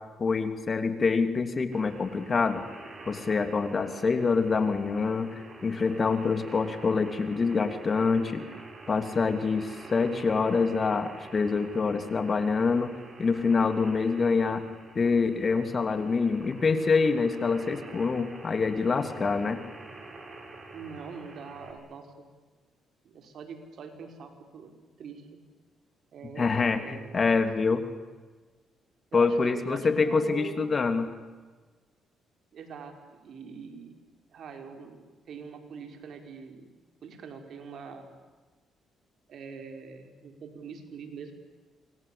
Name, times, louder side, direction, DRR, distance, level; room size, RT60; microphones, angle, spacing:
voice 1, 0.2-2.6 3.1-8.4 8.9-12.9 13.2-14.6 14.9-19.6 26.4-27.8 29.1-31.1, left 4 dB, 40° left, 9 dB, 3.0 m, -26 dB
sound 1, 1.7-21.7, right 2 dB, 35° right, 7.0 m, -47 dB
voice 2, 20.7-22.3 23.0-24.7 25.0-25.3 26.1-27.3 29.1-30.7 32.5-33.9 34.3-36.7 37.0-38.1 39.3-41.3, right 5 dB, 65° right, 5 dB, 4.9 m, -43 dB
27.5 x 23.0 x 8.7 m, 1.4 s
cardioid pair, 90°, 0 cm